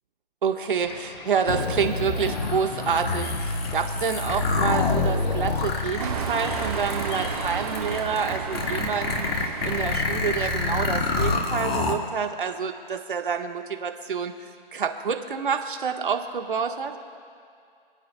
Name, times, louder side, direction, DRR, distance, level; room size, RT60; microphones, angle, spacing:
voice 1, 0.4-9.3 9.6-14.3 14.7-16.9, right 6 dB, 60° right, 4 dB, 1.5 m, -28 dB
sound 1, 0.8-8.0, left 2 dB, 45° left, 2.0 m, -43 dB
sound 2, 1.5-11.9, left 3 dB, 85° left, 2.0 m, -27 dB
sound 3, 6.0-11.3, right 5 dB, 40° right, 2.2 m, -33 dB
28.5 x 10.0 x 2.3 m, 2.3 s
hypercardioid pair, 175°, 29 cm